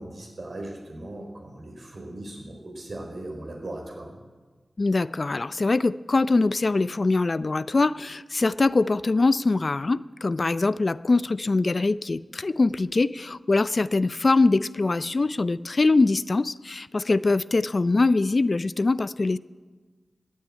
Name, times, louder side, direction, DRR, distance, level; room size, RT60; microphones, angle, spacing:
voice 1, 0.0-4.2, right 1 dB, 70° right, 1 dB, 4.6 m, -38 dB
voice 2, 4.8-19.4, left 3 dB, 55° left, 16 dB, 0.4 m, -23 dB
15.0 x 9.4 x 9.7 m, 1.4 s
cardioid pair, 40°, 0 cm